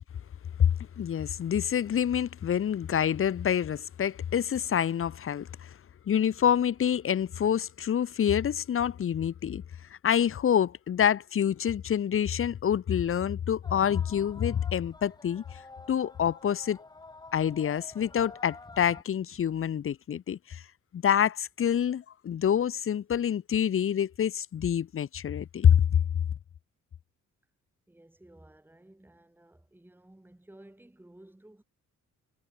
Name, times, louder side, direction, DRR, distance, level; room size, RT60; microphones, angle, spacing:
voice 1, 0.6-5.7 6.1-9.6 10.0-15.4 15.9-16.8 17.3-20.6 20.9-26.0, left 9 dB, 45° left, 0.8 m, -27 dB
sound 1, 13.6-19.0, left 3 dB, 15° left, 0.8 m, -48 dB
voice 2, 27.9-31.6, right 1 dB, 5° right, 2.9 m, -55 dB
wide cardioid pair, 145°, 31 cm